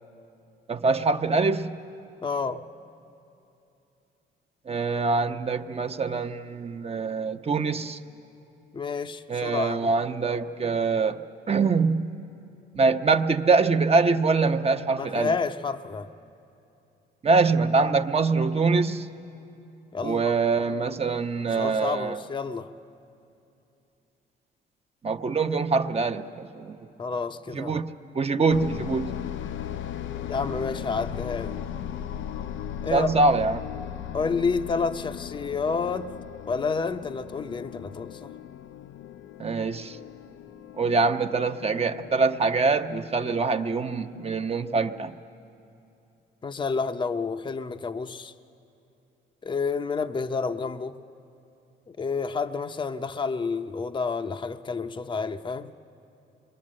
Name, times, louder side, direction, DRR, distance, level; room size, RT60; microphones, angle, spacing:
voice 1, 0.7-1.8 4.7-8.0 9.3-12.1 12.7-15.4 17.2-19.1 20.0-22.2 25.0-26.8 27.5-27.9 28.1-29.1 32.9-33.6 39.4-40.0 40.8-45.1, right 4 dB, 30° right, 0.9 m, -24 dB
voice 2, 2.2-2.6 8.7-9.9 15.0-16.1 19.9-20.3 21.5-22.7 27.0-27.8 30.3-31.6 32.8-33.1 34.1-36.2 36.5-38.3 46.4-48.3 49.4-51.0 51.9-55.7, left 4 dB, 25° left, 0.6 m, -29 dB
sound 1, 28.5-45.2, left 10 dB, 75° left, 0.5 m, -38 dB
26.5 x 22.0 x 7.6 m
cardioid pair, 90°, 20 cm